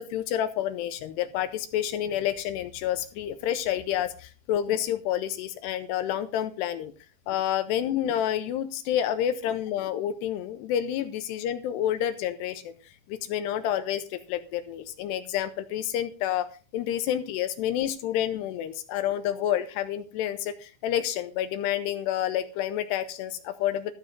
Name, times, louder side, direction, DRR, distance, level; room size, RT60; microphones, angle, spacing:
voice 1, 0.0-6.9 7.3-12.7 13.1-16.5 16.7-23.9, left 11 dB, 80° left, 10 dB, 2.6 m, -29 dB
13.5 x 7.2 x 5.2 m, 0.36 s
omnidirectional pair, 5.2 m